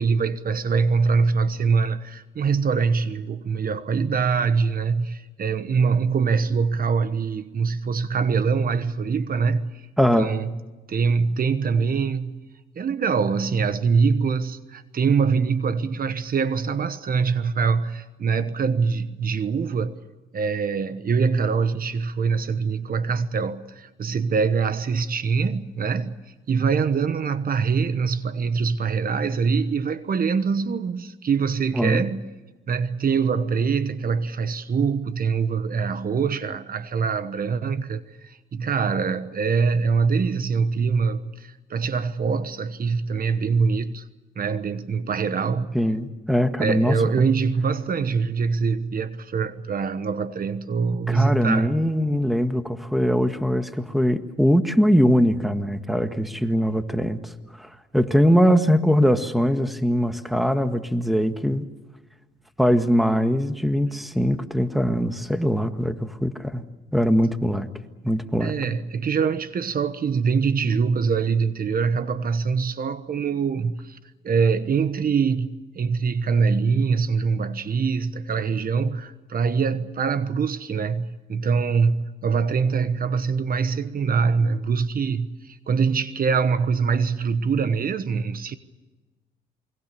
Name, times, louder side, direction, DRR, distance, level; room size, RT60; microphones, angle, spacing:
voice 1, 0.0-9.9 10.2-10.6 10.9-12.4 12.7-20.0 20.3-26.1 26.5-32.2 32.7-44.1 44.4-45.7 46.6-51.8 68.4-74.0 74.2-88.6, right 5 dB, 45° right, 1.2 m, -24 dB
voice 2, 10.0-10.3 31.7-32.0 45.7-47.3 51.1-61.7 62.6-66.6 66.9-67.7 68.0-68.5, equal, ahead, 1.7 m, -21 dB
28.0 x 22.0 x 6.9 m
cardioid pair, 90°, 20 cm